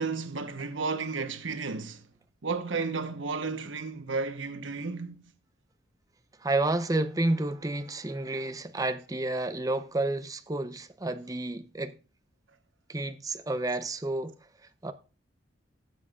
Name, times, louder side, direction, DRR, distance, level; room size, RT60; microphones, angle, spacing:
voice 1, 0.0-2.0 2.4-5.2, right 4 dB, 90° right, 1.1 m, -33 dB
voice 2, 6.4-12.0 12.9-14.4 14.8-14.9, right 2 dB, 20° right, 0.7 m, -30 dB
16.0 x 7.5 x 2.4 m
head